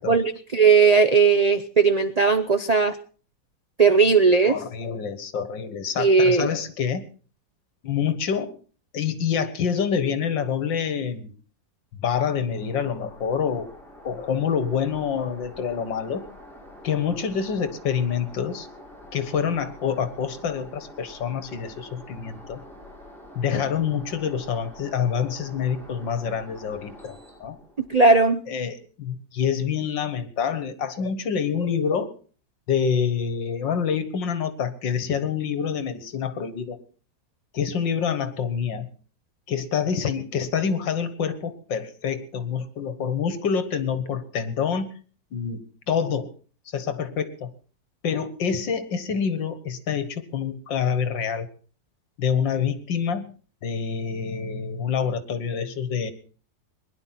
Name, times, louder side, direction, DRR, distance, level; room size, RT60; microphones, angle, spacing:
voice 1, 0.1-3.0 3.8-4.6 6.0-6.5 27.9-28.4, right 4 dB, 75° right, 10 dB, 0.3 m, -17 dB
voice 2, 4.4-7.0 7.8-8.5 8.9-11.3 12.0-13.7 14.0-16.2 16.8-18.7 19.1-22.6 23.4-27.6 28.5-32.1 32.7-36.8 37.5-38.9 39.5-45.0 45.3-46.3 46.7-47.5 48.0-51.5 52.2-53.3 53.6-56.1, left 7 dB, 80° left, 12 dB, 2.2 m, -27 dB
sound 1, 12.5-28.0, left 1 dB, ahead, 5.2 m, -46 dB
21.0 x 11.0 x 5.9 m, 0.41 s
omnidirectional pair, 2.0 m